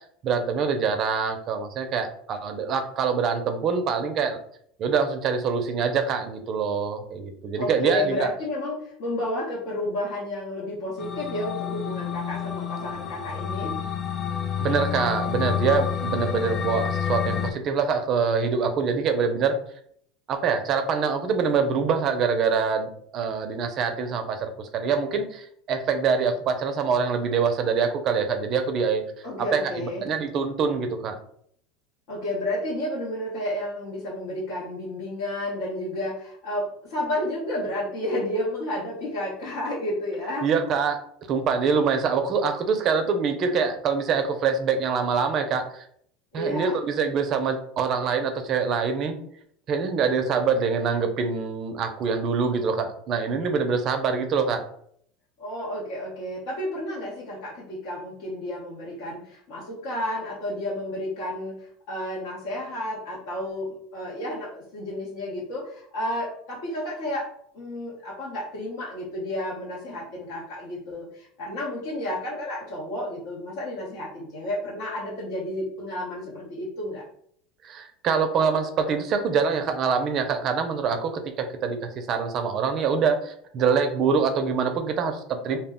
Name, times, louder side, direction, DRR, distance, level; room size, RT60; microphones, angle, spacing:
voice 1, 0.2-4.4 4.8-8.3 14.6-19.6 20.3-29.0 29.5-29.6 30.0-31.2 40.4-41.0 41.3-45.9 46.3-49.2 49.7-54.6 77.6-85.6, right 5 dB, 40° right, 7 dB, 0.4 m, -25 dB
voice 2, 7.6-13.8 29.2-30.1 32.1-40.5 46.3-46.8 55.4-77.0, left 1 dB, 70° left, -6 dB, 0.8 m, -31 dB
sound 1, 11.0-17.5, left 8 dB, 30° left, 0.3 m, -29 dB
2.1 x 2.0 x 3.5 m, 0.65 s
supercardioid pair, 145°, 0 cm